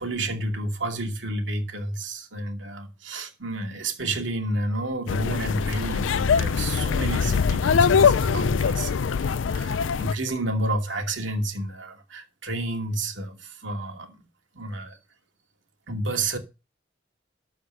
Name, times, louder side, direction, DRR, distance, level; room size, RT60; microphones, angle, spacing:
voice 1, 0.0-14.3 14.5-15.0 15.9-16.4, right 1 dB, 80° right, 2.5 m, -30 dB
sound 1, 5.1-10.1, left 6 dB, 85° left, 0.4 m, -22 dB
13.5 x 4.9 x 6.7 m
head